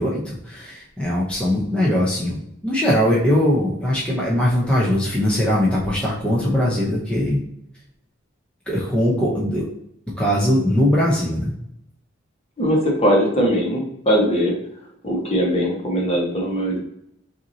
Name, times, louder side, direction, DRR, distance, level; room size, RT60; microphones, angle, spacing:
voice 1, 0.0-2.4 2.6-7.4 8.7-9.7 10.2-11.5, equal, 5° left, -6 dB, 0.8 m, -20 dB
voice 2, 12.6-14.5 15.0-16.8, equal, 35° left, -2 dB, 1.2 m, -20 dB
5.7 x 2.8 x 2.8 m, 0.73 s
head